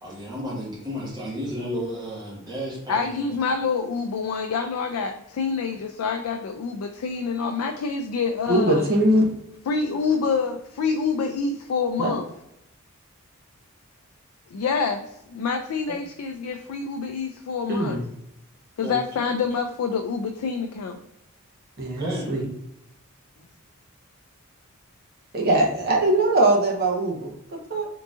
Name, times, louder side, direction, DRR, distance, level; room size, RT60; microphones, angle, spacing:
voice 1, 0.0-3.1 15.9-16.0 18.8-19.0 22.0-22.3, equal, 20° right, -6 dB, 1.4 m, -32 dB
voice 2, 2.9-8.9 9.7-12.3 14.5-18.0 18.8-21.0, left 5 dB, 80° left, 5 dB, 0.4 m, -27 dB
voice 3, 8.5-9.2 12.0-12.1 17.7-18.0 21.8-22.4 25.3-27.9, right 1 dB, 45° right, -1 dB, 0.8 m, -21 dB
3.8 x 3.6 x 2.4 m, 0.82 s
head